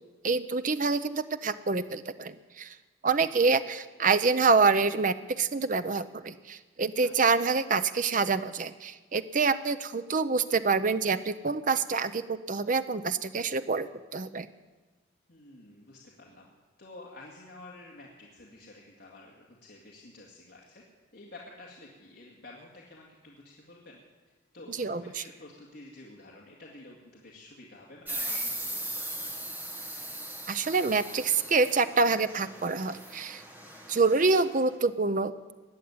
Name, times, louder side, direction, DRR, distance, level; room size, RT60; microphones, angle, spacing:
voice 1, 0.2-2.7 3.0-14.5 24.7-25.2 30.5-33.4 33.9-35.3, right 4 dB, 40° right, 12 dB, 0.6 m, -26 dB
voice 2, 15.3-16.5 16.8-20.8 21.1-24.0 24.5-29.5, left 2 dB, 55° left, -3 dB, 2.2 m, -50 dB
sound 1, 28.1-34.5, right 1 dB, 10° right, 1.9 m, -39 dB
20.0 x 7.3 x 9.6 m, 1.3 s
head